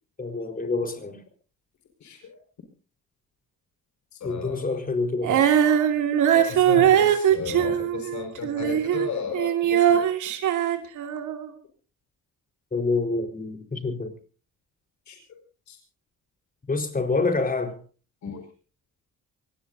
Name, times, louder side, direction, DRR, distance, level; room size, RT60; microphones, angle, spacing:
voice 1, 0.2-1.2 4.2-5.5 12.7-14.1 16.7-17.8, left 3 dB, 30° left, 4.3 m, -27 dB
voice 2, 2.0-2.4 4.1-4.8 6.3-10.1 15.1-15.4 15.7-15.8 18.2-18.4, left 6 dB, 70° left, 4.9 m, -34 dB
Female singing, 5.2-11.5, right 10 dB, 80° right, 2.7 m, -21 dB
24.5 x 19.5 x 2.7 m
cardioid pair, 90°, 30 cm